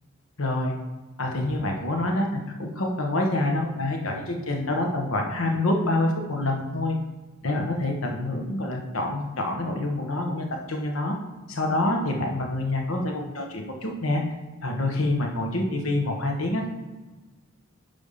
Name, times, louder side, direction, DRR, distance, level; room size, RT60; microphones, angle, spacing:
voice 1, 0.4-0.7 1.2-2.3 2.6-7.0 7.4-11.2 11.5-14.2 14.6-16.7, left 2 dB, 80° left, 2 dB, 1.3 m, -26 dB
9.0 x 3.5 x 5.7 m, 1.2 s
head